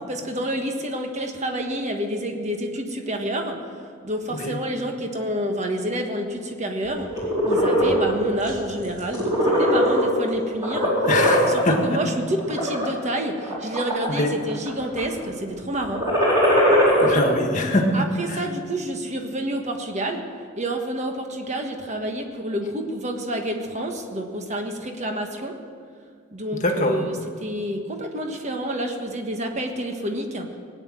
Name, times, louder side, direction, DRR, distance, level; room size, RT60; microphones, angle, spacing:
voice 1, 0.1-3.6 4.0-7.1 7.4-10.9 11.4-16.1 17.9-20.2 20.6-25.6 26.3-30.5, right 1 dB, 35° right, 4 dB, 1.4 m, -28 dB
sound 1, 7.0-8.0 8.5-8.7 9.0-10.3 10.6-11.7 12.4-12.8 13.4-14.2 14.5-15.0 15.9-17.1, equal, 20° right, 4.2 m, -20 dB
voice 2, 11.0-12.0 14.1-14.3 17.0-18.4 26.5-27.1, left 1 dB, 40° left, 3 dB, 1.6 m, -23 dB
19.0 x 9.4 x 7.6 m, 2.2 s
head